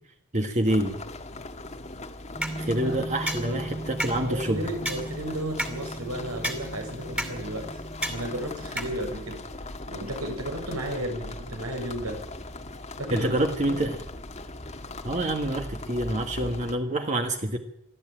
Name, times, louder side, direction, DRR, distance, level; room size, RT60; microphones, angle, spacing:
voice 1, 0.3-1.0 2.6-4.6 13.1-14.0 15.0-17.6, right 1 dB, 35° right, 4 dB, 1.6 m, -27 dB
sound 1, 0.7-16.8, left 2 dB, 30° left, 1.6 m, -39 dB
sound 2, 2.3-9.4, right 1 dB, 5° right, 2.6 m, -35 dB
voice 2, 2.8-3.8 4.2-7.8 8.1-9.4 9.9-12.2 13.0-13.8, right 1 dB, 80° right, 3 dB, 6.8 m, -34 dB
23.5 x 14.0 x 9.0 m, 0.76 s
head